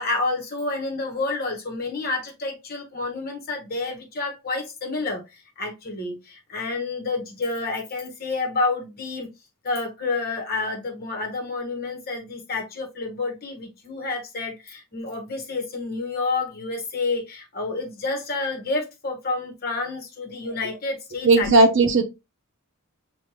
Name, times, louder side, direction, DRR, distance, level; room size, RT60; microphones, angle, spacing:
voice 1, 0.0-9.3 9.6-21.5, left 3 dB, 45° left, 1.3 m, -29 dB
voice 2, 21.2-22.0, right 2 dB, 55° right, 0.7 m, -16 dB
6.3 x 2.6 x 3.1 m
head